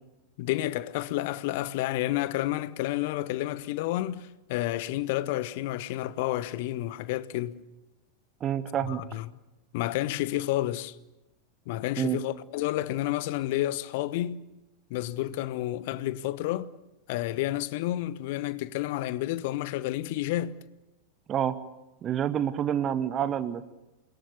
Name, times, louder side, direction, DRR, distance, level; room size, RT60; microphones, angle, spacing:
voice 1, 0.4-7.6 8.9-9.3 9.7-10.9 11.7-14.4 14.9-16.7 17.1-20.6, left 15 dB, 50° left, 1.1 m, -30 dB
voice 2, 8.4-9.0 12.0-12.2 21.3-21.6 22.0-23.7, right 9 dB, 30° right, 1.2 m, -28 dB
29.5 x 22.0 x 7.0 m
figure-of-eight pair, 90°, 0 cm